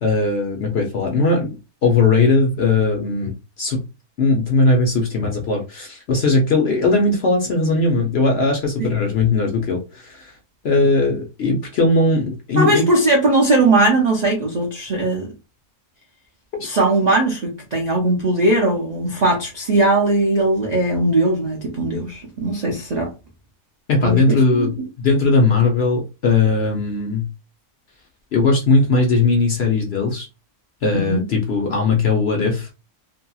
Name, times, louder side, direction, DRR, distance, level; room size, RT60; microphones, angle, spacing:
voice 1, 0.0-1.5 1.8-3.8 4.2-10.3 10.6-12.8 16.6-16.7 23.9-27.3 28.3-30.3 30.8-32.7, left 3 dB, 65° left, 0.6 m, -18 dB
voice 2, 12.6-15.3 16.6-23.1 24.0-24.9 30.9-31.3, right 2 dB, 85° right, 0.3 m, -19 dB
2.8 x 2.6 x 2.3 m
omnidirectional pair, 1.6 m